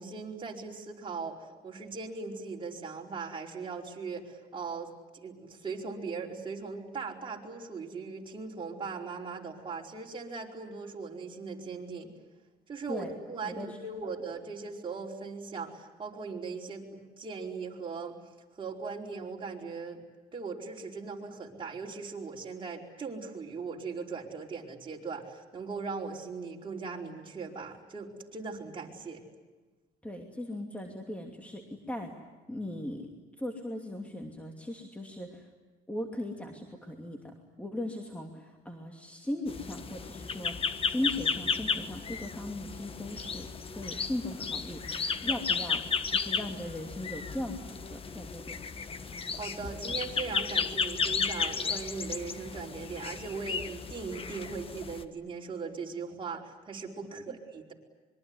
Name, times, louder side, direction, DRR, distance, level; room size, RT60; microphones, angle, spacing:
voice 1, 0.0-12.1 12.7-18.2 18.5-20.0 20.3-29.2 49.1-57.7, right 4 dB, 30° right, -1 dB, 4.9 m, -39 dB
voice 2, 13.5-13.8 30.0-32.1 32.5-33.1 33.4-35.5 35.9-44.8 45.2-48.6, left 1 dB, 10° left, 2 dB, 2.7 m, -38 dB
sound 1, 39.5-55.0, left 5 dB, 35° left, 1.4 m, -34 dB
25.5 x 23.5 x 9.7 m, 1.2 s
cardioid pair, 110°, 17 cm